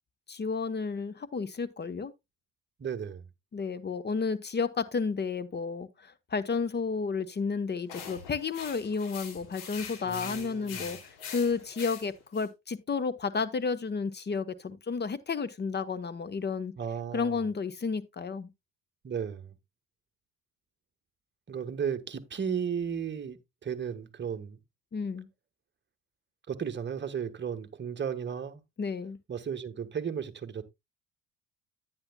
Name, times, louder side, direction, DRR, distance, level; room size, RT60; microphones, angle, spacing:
voice 1, 0.3-2.1 3.5-16.7 17.1-18.5 24.9-25.3 28.8-29.2, left 5 dB, 25° left, 1.1 m, -32 dB
voice 2, 2.8-3.3 10.0-10.8 16.8-17.4 19.0-19.5 21.5-24.6 26.5-28.6 29.3-30.6, right 7 dB, 30° right, 1.3 m, -34 dB
sound 1, 7.9-12.5, left 7 dB, 70° left, 2.9 m, -43 dB
9.9 x 9.8 x 2.3 m
hypercardioid pair, 65°, 39 cm